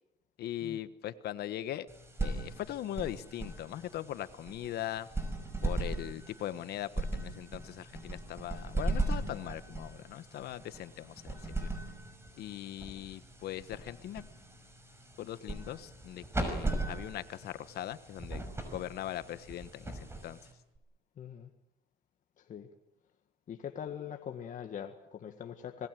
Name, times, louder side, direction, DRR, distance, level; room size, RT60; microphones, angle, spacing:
voice 1, 0.4-1.9 2.2-5.1 5.6-11.3 11.6-11.7 12.4-14.2 15.2-18.4 18.7-19.9 20.2-20.4, left 12 dB, 70° left, 13 dB, 1.4 m, -40 dB
sound 1, 1.9-20.8, right 2 dB, 15° right, 5.9 m, -38 dB
voice 2, 21.2-21.5 22.4-22.7 23.5-25.9, left 8 dB, 50° left, 4 dB, 1.8 m, -42 dB
26.0 x 20.5 x 7.7 m, 0.87 s
cardioid pair, 110°, 17 cm